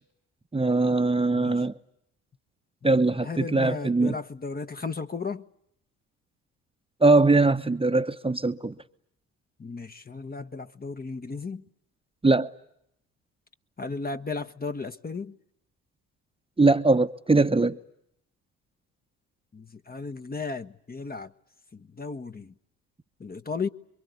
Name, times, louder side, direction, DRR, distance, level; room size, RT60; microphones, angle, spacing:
voice 1, 0.5-1.7 2.8-4.2 7.0-8.7 12.2-12.5 16.6-17.8, right 3 dB, 15° right, 1.0 m, -21 dB
voice 2, 1.3-1.6 3.2-5.5 9.6-11.6 13.8-15.3 19.5-21.3 21.7-22.5 23.2-23.7, left 4 dB, 20° left, 1.0 m, -35 dB
27.5 x 23.5 x 8.3 m
hypercardioid pair, 50°, 40 cm